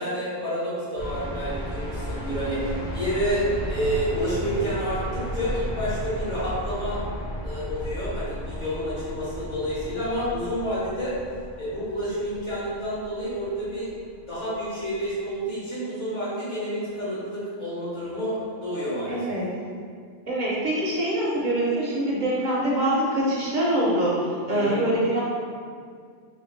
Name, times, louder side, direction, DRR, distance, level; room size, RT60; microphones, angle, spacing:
voice 1, 0.0-7.0 7.4-11.2 11.6-13.9 14.3-19.3 24.5-24.8, equal, 60° left, -10 dB, 1.9 m, -29 dB
sound 1, 1.0-14.9, equal, 40° left, 0.8 m, -34 dB
voice 2, 19.1-19.5 20.3-25.2, right 1 dB, 50° right, -5 dB, 0.6 m, -24 dB
3.4 x 3.2 x 3.1 m, 2.1 s
omnidirectional pair, 1.4 m